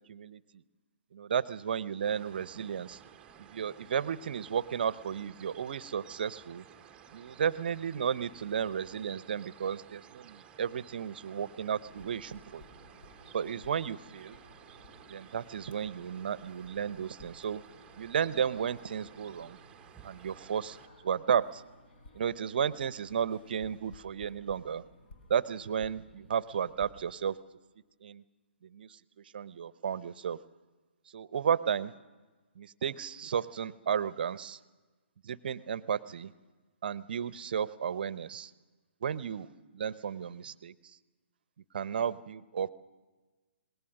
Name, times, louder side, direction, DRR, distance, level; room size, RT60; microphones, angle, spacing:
voice 1, 0.1-0.4 1.1-3.0 3.5-6.6 7.1-12.6 13.3-14.4 15.1-17.6 18.0-19.6 20.0-20.8 21.0-21.6 22.1-24.8 25.3-27.4 28.0-28.2 28.7-28.9 29.3-30.4 31.1-31.9 32.6-34.6 35.2-36.3 36.8-38.5 39.0-39.5 39.7-40.7 41.7-42.7, right 7 dB, 50° right, 18 dB, 0.7 m, -33 dB
sound 1, 2.0-20.9, right 9 dB, 15° right, 0.9 m, -55 dB
sound 2, 11.8-26.9, left 2 dB, 55° left, 4.4 m, -57 dB
26.0 x 20.5 x 6.5 m, 1.2 s
figure-of-eight pair, 130°, 6 cm